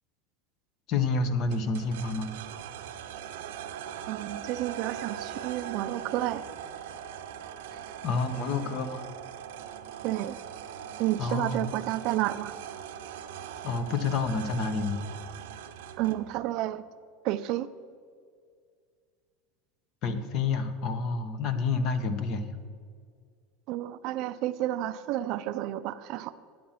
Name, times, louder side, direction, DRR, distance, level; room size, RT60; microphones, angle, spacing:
voice 1, 0.9-2.3 8.0-9.1 11.2-11.7 13.6-15.0 20.0-22.6, left 4 dB, 45° left, 11 dB, 0.9 m, -29 dB
sound 1, 1.5-16.3, right 9 dB, 85° right, 0.7 m, -41 dB
voice 2, 4.1-6.4 10.0-10.4 11.0-12.5 16.0-16.8 17.2-17.7 23.7-26.3, right 14 dB, 50° right, 13 dB, 0.4 m, -30 dB
10.0 x 7.7 x 5.7 m, 2.1 s
supercardioid pair, 145°, 0 cm